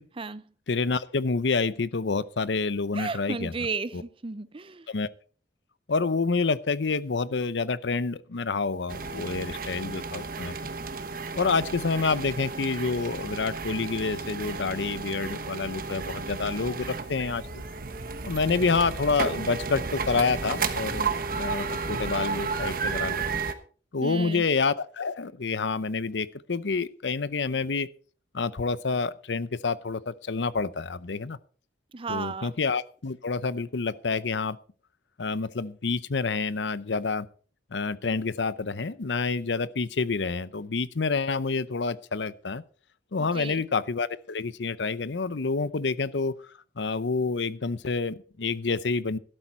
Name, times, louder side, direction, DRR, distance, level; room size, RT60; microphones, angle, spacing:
voice 1, 0.7-3.5 3.9-4.0 4.9-5.1 5.9-10.7 11.4-17.6 18.2-23.4 23.9-27.9 28.3-31.4 32.1-34.6 35.2-37.3 37.7-42.6 43.1-46.3 46.8-49.2, left 4 dB, 80° left, 0.7 m, -28 dB
voice 2, 2.9-4.9 24.0-24.4 31.9-32.5 43.2-43.6, right 4 dB, 30° right, 0.6 m, -34 dB
sound 1, 8.9-23.5, right 4 dB, 55° right, 1.2 m, -33 dB
12.5 x 12.0 x 4.4 m
head